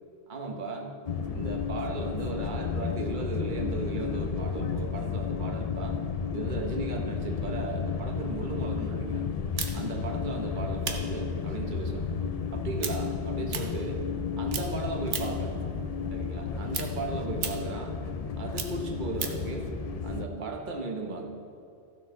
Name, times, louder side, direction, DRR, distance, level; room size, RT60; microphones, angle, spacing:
voice 1, 0.3-0.9 1.3-5.9 6.3-9.2 9.7-12.1 12.5-14.0 14.4-15.6 16.1-18.0 18.4-19.7 20.0-21.3, right 3 dB, 45° right, 2 dB, 1.2 m, -36 dB
sound 1, 1.1-20.3, left 6 dB, 50° left, 0.4 m, -32 dB
sound 2, 9.6-14.2 14.5-15.5 15.9-19.5, right 6 dB, 85° right, 1.2 m, -37 dB
14.5 x 6.4 x 3.8 m, 2.5 s
omnidirectional pair, 1.2 m